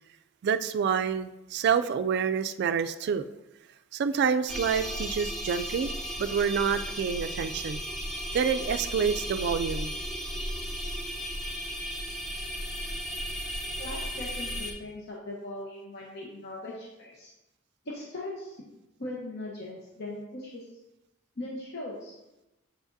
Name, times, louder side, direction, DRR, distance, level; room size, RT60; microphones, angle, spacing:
voice 1, 0.4-3.3 3.9-5.9 6.2-7.8 8.3-9.9, right 6 dB, 55° right, 11 dB, 0.3 m, -27 dB
sound 1, 4.5-14.7, equal, ahead, 0.7 m, -35 dB
voice 2, 13.8-17.3 17.8-18.6 19.0-20.6 21.4-22.1, left 1 dB, 55° left, -3 dB, 0.9 m, -39 dB
7.8 x 4.8 x 2.6 m, 0.96 s
head